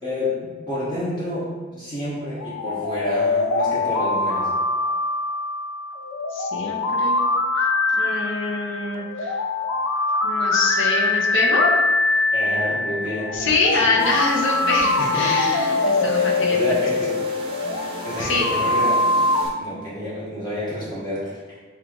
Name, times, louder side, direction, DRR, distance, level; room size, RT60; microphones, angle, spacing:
voice 1, 0.0-4.5 12.3-13.4 13.8-13.9 14.9-15.3 16.1-17.1 18.0-19.0 19.3-21.4, left 1 dB, 20° left, -9 dB, 0.9 m, -29 dB
sound 1, 2.3-19.5, left 3 dB, 90° left, 0.4 m, -23 dB
voice 2, 6.3-7.2 7.5-7.7 8.0-9.4 10.2-11.7 13.3-16.8 18.2-18.4, left 3 dB, 60° left, -2 dB, 0.9 m, -25 dB
sound 2, 14.0-19.5, right 2 dB, 25° right, 0.6 m, -35 dB
6.7 x 2.5 x 3.0 m, 1.4 s
head